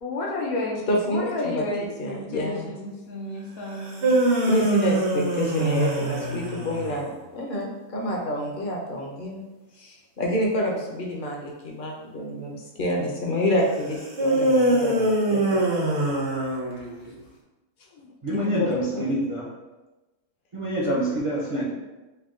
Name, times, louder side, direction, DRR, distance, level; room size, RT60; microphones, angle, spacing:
voice 1, 0.0-4.1 17.9-18.1, left 2 dB, 85° left, -2 dB, 1.3 m, -31 dB
voice 2, 0.9-1.6 2.0-2.7 4.5-9.4 9.8-15.6 18.3-19.1, left 1 dB, 45° left, -1 dB, 0.8 m, -28 dB
sound 1, 3.8-7.0 14.1-17.1, right 1 dB, 50° right, 1.0 m, -23 dB
voice 3, 18.2-19.4 20.5-21.7, equal, 30° right, -7 dB, 0.6 m, -26 dB
4.5 x 2.3 x 3.7 m, 1.1 s
omnidirectional pair, 1.5 m